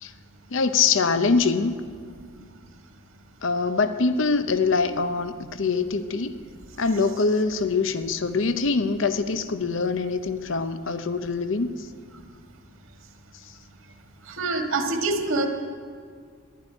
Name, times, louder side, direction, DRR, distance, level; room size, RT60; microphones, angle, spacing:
voice 1, 0.5-1.7 3.4-6.4 6.8-11.7, left 4 dB, 65° left, 11 dB, 0.7 m, -24 dB
voice 2, 14.3-15.5, right 3 dB, 80° right, 4 dB, 1.7 m, -25 dB
11.5 x 11.5 x 9.9 m, 2.1 s
head